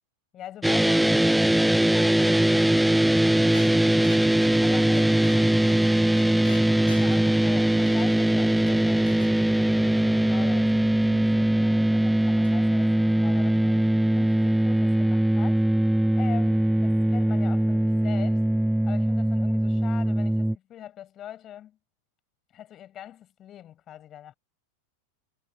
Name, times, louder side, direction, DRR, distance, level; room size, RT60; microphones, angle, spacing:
voice 1, 0.3-5.9 6.9-15.6 16.2-18.4 18.8-21.8 22.5-24.3, left 11 dB, 30° left, 5.9 m, -43 dB
sound 1, 0.6-20.6, right 1 dB, 5° right, 0.5 m, -21 dB
sound 2, 3.5-9.4 11.4-11.5 12.4-12.9, left 5 dB, 75° left, 2.2 m, -49 dB
figure-of-eight pair, 90°, 0 cm